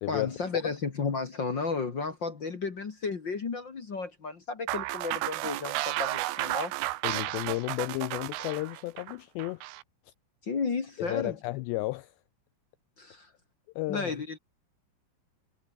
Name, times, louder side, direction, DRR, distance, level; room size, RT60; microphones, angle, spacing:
voice 1, 0.1-6.7 10.4-11.3 13.0-13.3 13.9-14.4, left 4 dB, 50° left, 1.3 m, -33 dB
sound 1, 4.7-9.8, right 17 dB, 80° right, 3.6 m, -33 dB
voice 2, 7.0-9.6 10.1-10.2 11.0-12.1 13.8-14.2, left 20 dB, 90° left, 2.4 m, -33 dB
omnidirectional pair, 5.7 m